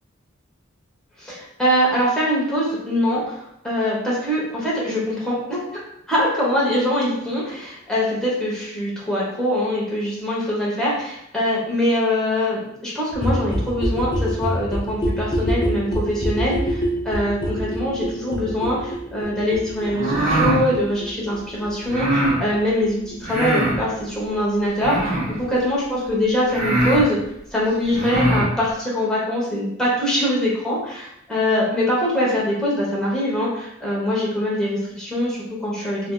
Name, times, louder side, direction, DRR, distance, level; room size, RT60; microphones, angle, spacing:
voice 1, 1.2-5.8 6.1-27.2 27.5-36.1, equal, 5° left, -7 dB, 0.9 m, -23 dB
sound 1, 13.1-24.7 24.9-25.0 25.2-25.3 25.5-25.6 25.8-25.9 26.1-26.2 26.4-26.5, equal, 25° left, 0.5 m, -27 dB
sound 2, 19.9-20.6 21.9-22.4 23.2-23.8 24.8-25.4 26.1-26.2 26.5-27.0 27.8-28.5, right 1 dB, 45° right, 1.3 m, -21 dB
3.3 x 2.6 x 2.2 m, 0.75 s
head